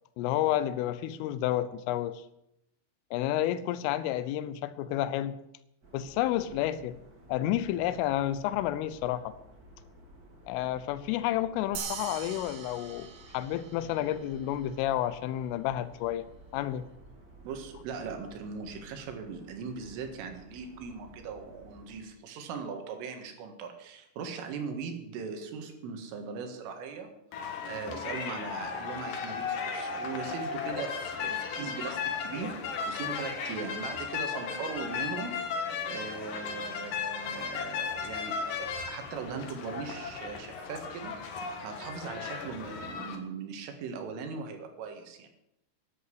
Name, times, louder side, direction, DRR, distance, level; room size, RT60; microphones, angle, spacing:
voice 1, 0.2-2.2 3.1-5.4 5.9-7.0 7.3-9.3 10.5-16.3 16.5-16.9, left 12 dB, 90° left, 14 dB, 3.3 m, -30 dB
sound 1, 5.8-22.0, right 1 dB, 40° right, 1.3 m, -54 dB
sound 2, 11.8-14.5, right 7 dB, 60° right, 3.3 m, -42 dB
voice 2, 17.4-27.1 27.7-35.6 35.9-41.3 41.6-45.3, right 5 dB, 85° right, 5 dB, 4.3 m, -39 dB
sound 3, 27.3-43.2, left 6 dB, 60° left, 2.7 m, -36 dB
11.0 x 11.0 x 8.3 m, 0.82 s
omnidirectional pair, 5.6 m